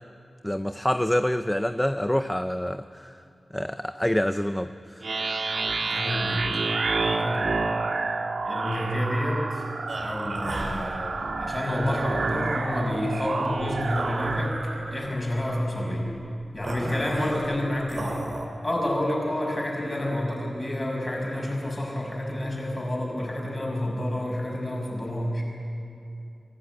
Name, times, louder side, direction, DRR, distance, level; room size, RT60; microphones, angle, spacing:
voice 1, 0.4-3.2 3.5-5.1, equal, 5° left, 10 dB, 0.5 m, -27 dB
sound 1, 5.0-14.5, right 3 dB, 65° right, 1.5 m, -29 dB
voice 2, 5.8-6.7 7.0-7.6 8.5-9.7 10.0-14.6 14.9-16.1 16.5-18.2 18.6-25.4, left 1 dB, 20° left, -2 dB, 6.2 m, -29 dB
sound 2, 9.9-18.5, right 1 dB, 50° right, 3.1 m, -37 dB
25.0 x 16.0 x 9.3 m, 2.6 s
wide cardioid pair, 130°, 0 cm